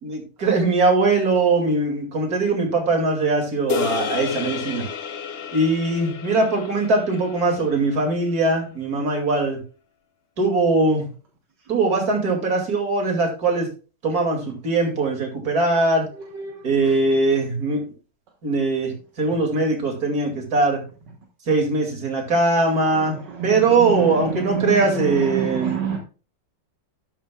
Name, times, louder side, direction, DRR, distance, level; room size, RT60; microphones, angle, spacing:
voice 1, 0.0-4.9 5.5-9.6 10.4-11.1 11.7-13.7 14.0-16.1 16.6-17.8 18.4-20.8 21.5-25.8, right 3 dB, 55° right, 2 dB, 2.9 m, -21 dB
sound 1, 3.7-8.2, left 6 dB, 45° left, 0.9 m, -31 dB
voice 2, 23.3-26.0, right 6 dB, 75° right, 1 dB, 2.0 m, -27 dB
12.0 x 8.8 x 2.3 m, 0.35 s
omnidirectional pair, 1.9 m